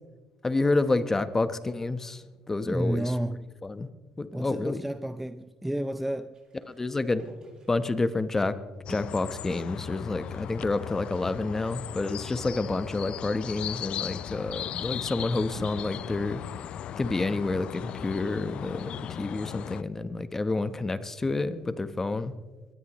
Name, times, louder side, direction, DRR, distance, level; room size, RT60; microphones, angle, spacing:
voice 1, 0.4-3.1 3.6-3.9 4.2-4.8 6.7-7.2 7.7-8.5 8.9-16.4 17.0-22.3, left 3 dB, 20° left, 0.9 m, -29 dB
voice 2, 2.7-3.4 4.3-6.4, right 1 dB, 5° right, 0.5 m, -31 dB
sound 1, 6.3-16.4, right 2 dB, 35° right, 7.2 m, -54 dB
sound 2, 8.9-19.8, left 10 dB, 60° left, 0.4 m, -37 dB
23.0 x 18.5 x 3.1 m
cardioid pair, 105°, 2 cm